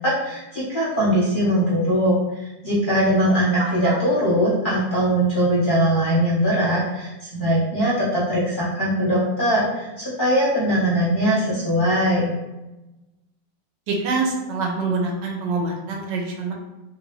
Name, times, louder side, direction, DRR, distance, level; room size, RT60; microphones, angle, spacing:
voice 1, 0.0-12.3, equal, 40° left, -9 dB, 0.7 m, -21 dB
voice 2, 3.6-4.0 13.9-16.5, right 3 dB, 85° right, 0 dB, 1.3 m, -25 dB
3.0 x 2.6 x 3.0 m, 1.0 s
omnidirectional pair, 1.9 m